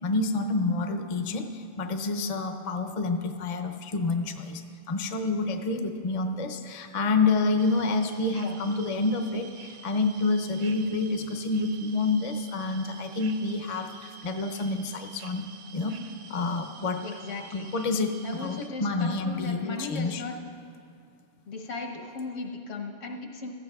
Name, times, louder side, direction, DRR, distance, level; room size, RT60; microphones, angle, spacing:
voice 1, 0.0-4.6 4.9-15.4 15.7-16.0 16.3-17.0 17.5-20.2, left 3 dB, 40° left, 6 dB, 0.6 m, -28 dB
sound 1, 7.6-18.7, right 5 dB, 85° right, 1.0 m, -48 dB
voice 2, 17.0-17.7 18.2-20.4 21.5-23.5, left 3 dB, 80° left, 2 dB, 1.3 m, -37 dB
16.5 x 14.0 x 2.3 m, 2.3 s
omnidirectional pair, 1.3 m